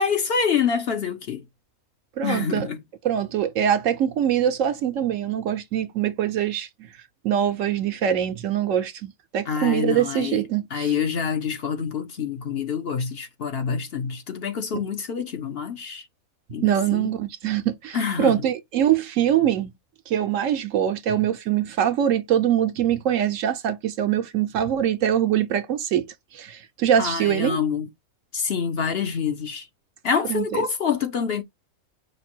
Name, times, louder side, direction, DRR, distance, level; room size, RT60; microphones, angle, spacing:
voice 1, 0.0-1.4 2.2-2.8 9.5-10.4 10.7-16.0 16.5-17.1 17.9-18.4 27.0-27.9 28.3-29.7 30.0-31.4, left 6 dB, 55° left, 0.8 m, -26 dB
voice 2, 2.2-2.7 3.0-6.7 7.2-10.9 14.7-14.8 16.6-19.7 20.1-26.1 26.3-27.6 30.3-30.6, right 10 dB, 70° right, 1.0 m, -23 dB
5.2 x 2.3 x 4.4 m
omnidirectional pair, 1.5 m